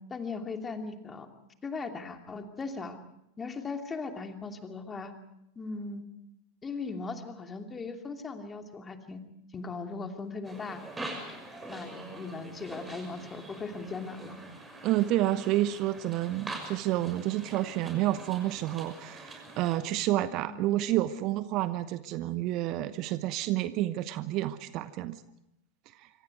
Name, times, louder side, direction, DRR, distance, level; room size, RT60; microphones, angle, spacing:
voice 1, 0.1-1.3 1.6-3.0 3.4-5.1 5.6-6.0 6.6-9.2 9.5-10.8 11.3-14.4 20.5-20.7, left 4 dB, 15° left, 5 dB, 2.7 m, -38 dB
sound 1, 10.4-19.8, right 2 dB, 10° right, 6.2 m, -44 dB
voice 2, 14.8-25.2 25.9-26.1, right 14 dB, 40° right, 14 dB, 1.0 m, -29 dB
26.5 x 25.5 x 4.8 m, 0.83 s
figure-of-eight pair, 90°, 0 cm